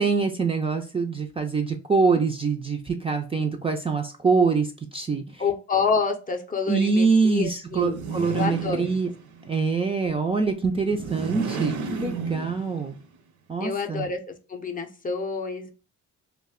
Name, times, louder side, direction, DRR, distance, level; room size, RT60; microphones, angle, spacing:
voice 1, 0.0-5.4 6.7-9.1 9.4-13.0 13.5-14.1, right 4 dB, 20° right, 3 dB, 0.4 m, -24 dB
voice 2, 5.4-8.0 8.3-8.9 13.6-15.7, left 5 dB, 30° left, 4 dB, 0.5 m, -28 dB
sound 1, 7.7-9.5 10.8-13.0, right 5 dB, 70° right, 0.6 m, -33 dB
2.5 x 2.1 x 3.5 m, 0.35 s
cardioid pair, 90°, 30 cm